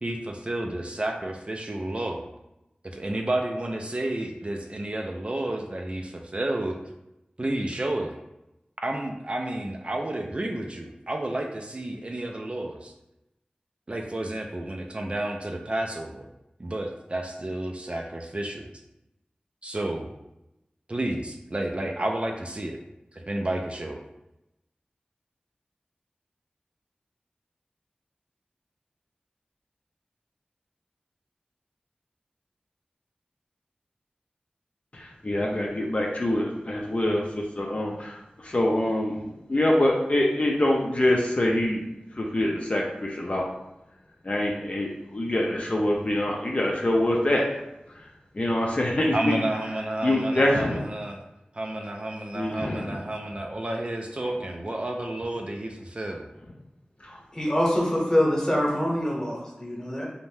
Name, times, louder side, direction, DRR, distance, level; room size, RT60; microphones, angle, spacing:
voice 1, 0.0-2.2 2.8-6.8 7.4-8.2 8.8-12.9 13.9-16.3 16.6-18.7 19.6-20.1 20.9-22.8 23.1-24.0 49.1-51.2 51.5-56.3, right 1 dB, 40° right, 2 dB, 0.3 m, -31 dB
voice 2, 34.9-41.8 42.1-43.5 44.2-47.4 47.9-48.1 48.3-49.4 50.0-50.8 52.3-53.0 57.0-57.2, left 1 dB, 45° left, -2 dB, 0.4 m, -25 dB
voice 3, 57.3-60.1, equal, 20° left, -4 dB, 0.9 m, -24 dB
2.6 x 2.1 x 3.2 m, 0.92 s
wide cardioid pair, 45°, 3 cm